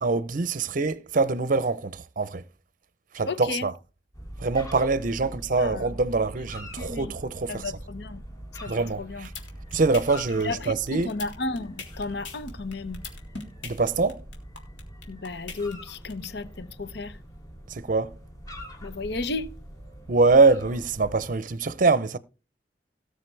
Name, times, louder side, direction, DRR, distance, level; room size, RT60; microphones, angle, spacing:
voice 1, 0.0-2.4 3.1-3.7 4.4-7.7 8.7-9.3 9.7-11.1 13.6-14.2 17.7-18.1 20.1-22.2, right 3 dB, 45° right, 0.6 m, -24 dB
voice 2, 3.3-3.7 5.5-5.9 6.8-7.1 7.5-8.2 8.6-9.3 10.4-13.0 15.1-17.2 18.8-19.5, left 3 dB, 65° left, 0.8 m, -33 dB
sound 1, 4.1-21.4, equal, 20° left, 2.6 m, -43 dB
sound 2, 9.0-16.3, left 4 dB, 90° left, 3.4 m, -40 dB
18.0 x 6.6 x 3.3 m
head